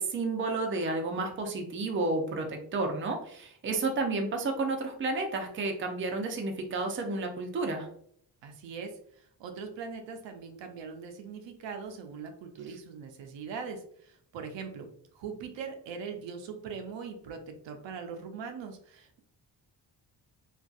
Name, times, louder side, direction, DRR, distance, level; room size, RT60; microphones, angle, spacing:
voice 1, 0.0-7.9, right 3 dB, 30° right, 3 dB, 0.4 m, -31 dB
voice 2, 8.4-19.2, right 5 dB, 90° right, 5 dB, 0.5 m, -41 dB
2.6 x 2.3 x 2.3 m, 0.62 s
cardioid pair, 110°, 43 cm